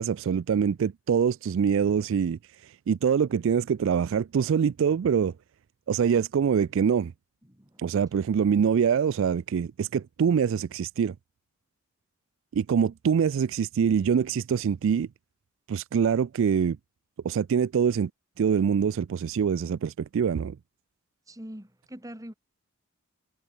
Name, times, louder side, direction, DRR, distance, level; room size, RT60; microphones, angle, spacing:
voice 1, 0.0-5.3 5.9-7.1 7.8-11.1 12.5-15.1 15.7-16.8 17.2-18.1 18.4-20.6, right 7 dB, 60° right, 0.3 m, -24 dB
voice 2, 7.4-8.0 21.3-22.3, equal, 15° right, 3.0 m, -44 dB
head